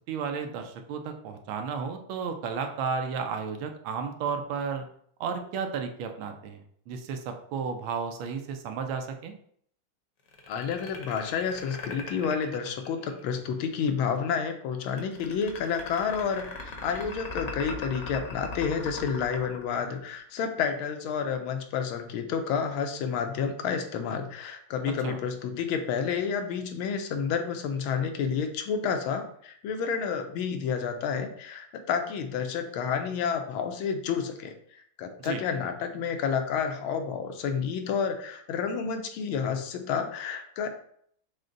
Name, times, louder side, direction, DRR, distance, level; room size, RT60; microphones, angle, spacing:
voice 1, 0.1-4.9 5.2-9.3 25.0-25.2 35.2-35.4, right 6 dB, 85° right, 6 dB, 1.4 m, -33 dB
sound 1, 10.3-13.5 14.9-20.4, left 3 dB, 55° left, 1.0 m, -39 dB
voice 2, 10.5-16.5 16.8-40.7, left 6 dB, 85° left, 6 dB, 1.5 m, -30 dB
6.4 x 2.2 x 3.8 m, 0.63 s
omnidirectional pair, 2.3 m